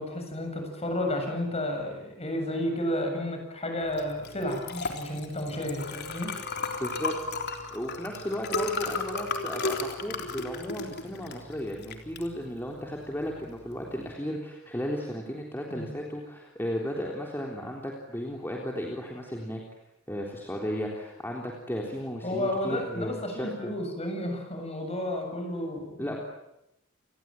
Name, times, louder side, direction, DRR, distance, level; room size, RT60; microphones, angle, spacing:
voice 1, 0.0-6.3 15.8-15.9 22.2-26.2, left 1 dB, 30° left, 4 dB, 7.5 m, -32 dB
Liquid, 3.9-14.1, left 3 dB, 50° left, 3.6 m, -35 dB
voice 2, 6.8-7.1 7.4-19.6 20.1-23.5 26.0-26.2, equal, 10° left, -1 dB, 3.7 m, -35 dB
30.0 x 21.0 x 9.1 m, 0.85 s
head